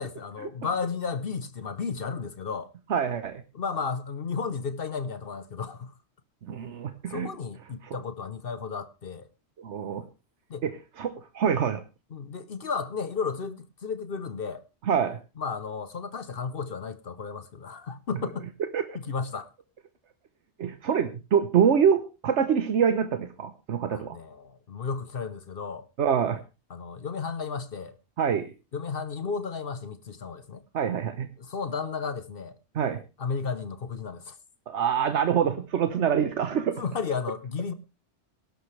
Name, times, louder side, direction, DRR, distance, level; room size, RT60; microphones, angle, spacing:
voice 1, 0.0-2.7 3.5-5.9 7.1-9.2 10.5-10.6 12.1-14.6 15.4-18.5 19.0-19.5 23.9-25.8 26.7-27.9 28.7-30.6 31.4-32.5 33.2-34.3 36.8-37.7, left 5 dB, 55° left, 1.0 m, -33 dB
voice 2, 2.9-3.4 6.5-7.3 7.8-8.0 9.6-10.0 10.6-11.8 14.9-15.2 18.7-19.0 20.6-24.2 26.0-26.4 28.2-28.5 30.7-31.3 32.7-33.0 34.7-36.8, right 7 dB, 85° right, 1.3 m, -25 dB
18.0 x 11.5 x 3.3 m
omnidirectional pair, 1.2 m